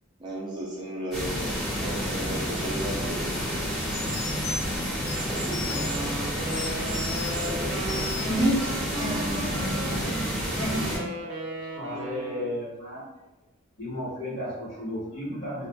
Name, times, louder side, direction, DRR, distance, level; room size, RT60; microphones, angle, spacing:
voice 1, 0.2-4.2 5.1-6.3 7.2-8.1 8.9-9.1, right 1 dB, 20° right, -5 dB, 0.4 m, -36 dB
Haifoss Waterfall, 1.1-11.0, equal, ahead, 0.8 m, -30 dB
Computer Beeps, 3.3-3.4 3.9-6.0 6.5-7.5 7.9-8.4, left 3 dB, 85° left, 0.6 m, -36 dB
Wind instrument woodwind instrument, 5.7-12.6, right 2 dB, 75° right, 0.5 m, -36 dB
voice 2, 8.3-10.2 10.6-11.1, right 1 dB, 30° left, -8 dB, 1.1 m, -29 dB
voice 3, 11.6-13.0 13.8-15.7, left 1 dB, 55° left, -9 dB, 1.4 m, -34 dB
2.5 x 2.3 x 2.2 m, 1.1 s
head